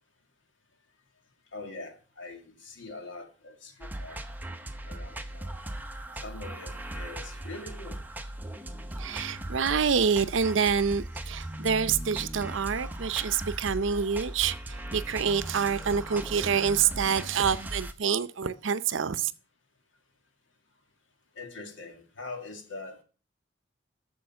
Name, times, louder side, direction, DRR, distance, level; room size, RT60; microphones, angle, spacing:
voice 1, 1.5-4.2 4.9-5.5 6.2-8.0 21.4-23.0, left 3 dB, 75° left, 2.1 m, -43 dB
sound 1, 3.8-17.9, right 1 dB, 10° right, 0.7 m, -38 dB
voice 2, 9.0-19.3, right 6 dB, 75° right, 0.6 m, -27 dB
11.5 x 7.0 x 5.7 m
head